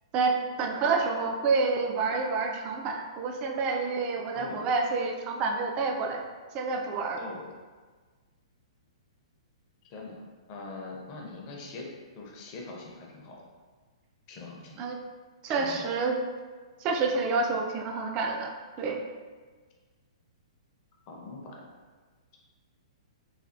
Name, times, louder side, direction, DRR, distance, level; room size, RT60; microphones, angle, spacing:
voice 1, 0.1-6.2 6.5-7.2 14.8-15.0 15.4-16.2 16.8-18.5 18.8-19.0, right 4 dB, 30° right, 2 dB, 0.4 m, -28 dB
voice 2, 4.3-4.7 7.2-7.5 9.9-10.2 10.5-13.4 14.3-14.8 15.6-15.9 21.1-21.7, left 3 dB, 35° left, -1 dB, 0.6 m, -42 dB
3.2 x 2.3 x 2.5 m, 1.4 s
figure-of-eight pair, 115°, 3 cm